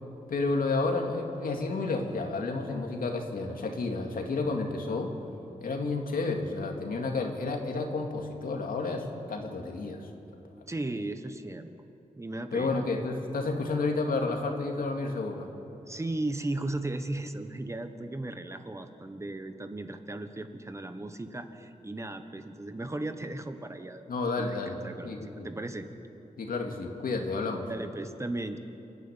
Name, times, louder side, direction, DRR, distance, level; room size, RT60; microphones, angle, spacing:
voice 1, 0.3-5.1 5.6-10.1 12.5-15.5 24.1-24.8 25.0-25.5 26.4-27.7, left 3 dB, 85° left, 2 dB, 2.4 m, -31 dB
voice 2, 10.7-11.7 12.2-12.8 15.9-24.1 24.4-25.9 27.7-28.6, right 2 dB, 20° right, 8 dB, 1.1 m, -36 dB
28.5 x 12.0 x 8.9 m, 2.9 s
wide cardioid pair, 120°, 14 cm